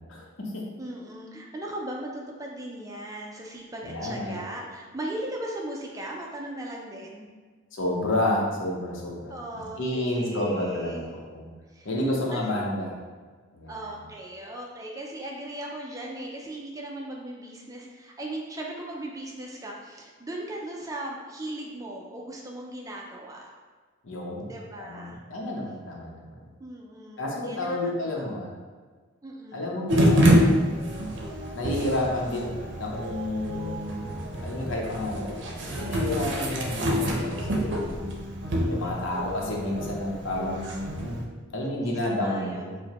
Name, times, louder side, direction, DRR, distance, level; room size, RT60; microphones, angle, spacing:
voice 1, 0.0-0.6 3.8-4.4 7.7-9.3 9.8-11.5 11.8-12.9 13.5-13.9 24.0-26.5 27.2-28.5 29.5-30.7 31.5-37.8 38.7-41.2 41.5-42.7, left 1 dB, 75° left, -2 dB, 0.8 m, -30 dB
voice 2, 0.8-7.3 9.3-11.1 11.7-11.9 12.3-12.5 13.7-23.5 24.5-25.2 26.6-28.3 29.2-29.8 38.6-39.1 41.7-42.8, right 1 dB, 15° right, -1 dB, 0.4 m, -38 dB
sound 1, 29.9-41.2, equal, 65° right, 0.6 m, -27 dB
4.7 x 2.1 x 2.9 m, 1.5 s
head